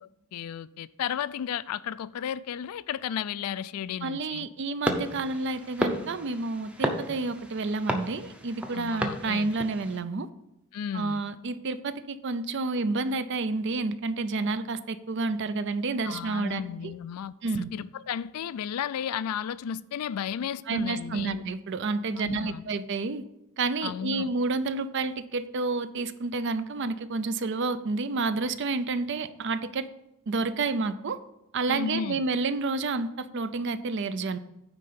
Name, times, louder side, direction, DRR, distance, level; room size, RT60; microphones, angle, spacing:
voice 1, 0.0-4.5 8.7-9.5 10.7-11.2 16.0-21.4 22.2-22.6 23.8-24.3 31.7-32.2, left 8 dB, 80° left, 17 dB, 0.3 m, -34 dB
voice 2, 4.0-10.3 10.9-16.9 17.4-17.7 20.7-23.2 23.6-29.9 30.3-31.2 31.5-34.4, right 3 dB, 55° right, 13 dB, 0.5 m, -30 dB
sound 1, 4.8-10.0, equal, 5° right, 0.6 m, -33 dB
9.6 x 3.7 x 6.8 m, 0.88 s
head